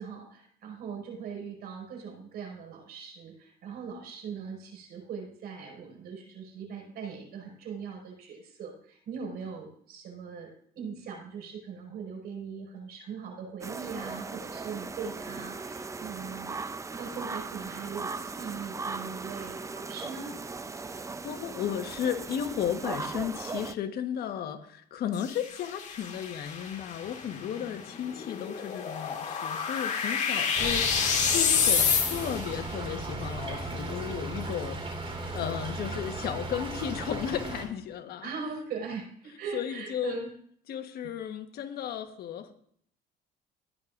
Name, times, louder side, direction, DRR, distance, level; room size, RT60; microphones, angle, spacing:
voice 1, 0.0-10.5 10.8-16.6 17.0-20.3 38.2-40.3 41.0-41.1, right 5 dB, 70° right, 1 dB, 5.4 m, -40 dB
sound 1, 13.6-23.7, right 4 dB, 20° right, 0.6 m, -38 dB
voice 2, 20.9-38.3 39.5-40.2 40.7-42.5, left 9 dB, 65° left, 7 dB, 1.3 m, -34 dB
sound 2, 25.1-32.6, left 6 dB, 45° left, 2.0 m, -29 dB
Stream / Trickle dribble, 30.6-37.6, right 2 dB, 35° right, 4.0 m, -36 dB
16.0 x 11.0 x 2.6 m, 0.63 s
cardioid pair, 110°, 17 cm